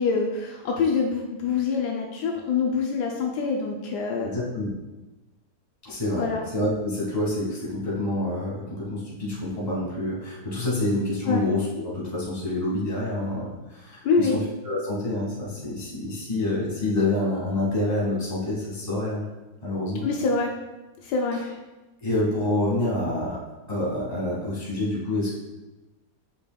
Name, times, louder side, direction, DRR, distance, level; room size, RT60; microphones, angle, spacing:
voice 1, 0.0-4.3 6.2-6.4 11.3-11.4 14.0-14.4 20.0-20.5 21.0-21.4, left 5 dB, 80° left, 0 dB, 1.2 m, -25 dB
voice 2, 4.2-4.7 5.8-6.3 6.5-19.2 19.6-20.1 22.0-23.4 23.7-25.3, left 1 dB, 25° left, -7 dB, 2.0 m, -27 dB
8.2 x 5.1 x 2.3 m, 1.1 s
omnidirectional pair, 1.8 m